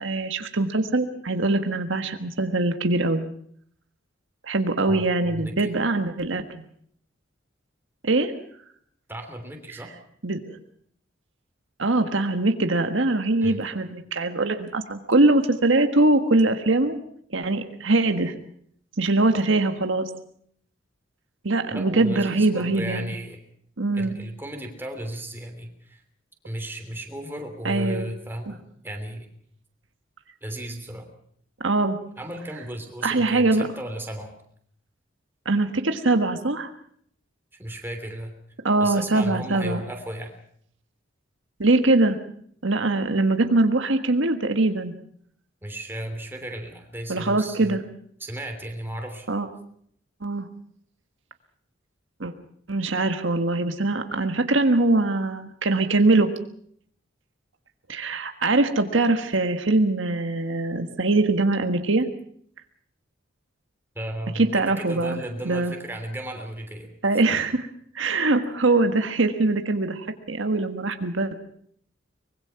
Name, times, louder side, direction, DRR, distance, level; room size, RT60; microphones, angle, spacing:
voice 1, 0.0-3.2 4.4-6.6 8.0-8.3 10.2-10.6 11.8-17.0 17.3-18.3 19.0-20.1 21.4-23.1 23.8-24.2 27.6-28.1 28.5-28.6 31.6-32.0 33.0-33.7 35.4-36.7 38.6-39.8 41.6-42.2 42.6-44.9 47.1-47.8 49.3-49.5 50.2-50.5 52.2-52.3 52.7-56.3 57.9-62.1 64.3-65.7 67.0-67.7 67.9-71.3, right 2 dB, 75° right, 7 dB, 1.5 m, -22 dB
voice 2, 4.9-5.7 9.1-9.9 13.4-13.6 21.7-23.4 24.0-26.0 26.4-29.3 30.4-31.1 32.2-34.3 37.6-38.3 38.8-40.3 45.6-47.8 48.2-49.3 63.9-67.2, right 1 dB, 10° right, 4 dB, 3.1 m, -35 dB
24.0 x 21.5 x 5.8 m, 0.64 s
head